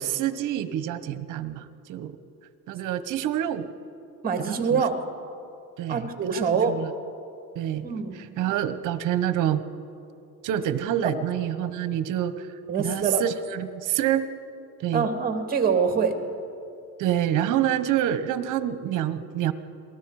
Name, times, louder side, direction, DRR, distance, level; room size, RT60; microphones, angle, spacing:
voice 1, 0.0-2.2 2.7-3.7 4.4-4.8 5.8-6.9 7.5-7.9 8.1-9.6 10.4-12.5 12.8-14.3 14.8-15.1 17.0-19.5, right 11 dB, 60° right, 12 dB, 1.1 m, -27 dB
voice 2, 4.2-5.0 5.9-6.8 7.8-8.2 12.7-13.2 14.9-16.1, right 5 dB, 25° right, 5 dB, 2.2 m, -24 dB
27.5 x 19.5 x 4.9 m, 2.7 s
cardioid pair, 140°, 35 cm